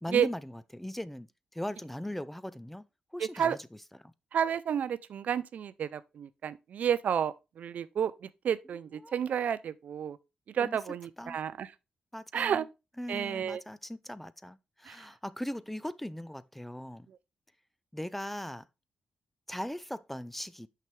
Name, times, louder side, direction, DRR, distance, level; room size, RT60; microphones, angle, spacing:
voice 1, 0.0-2.9 3.1-3.6 4.0-4.1 9.0-9.3 10.6-10.8 11.2-11.4 12.1-12.7 13.0-17.1 17.9-18.7 19.5-20.7, left 1 dB, 5° left, 0.4 m, -39 dB
voice 2, 3.2-3.6 4.3-10.2 10.5-11.7 12.3-12.6 13.1-13.6 14.9-15.0, right 8 dB, 65° right, 0.4 m, -31 dB
5.9 x 5.8 x 3.1 m
cardioid pair, 80°, 3 cm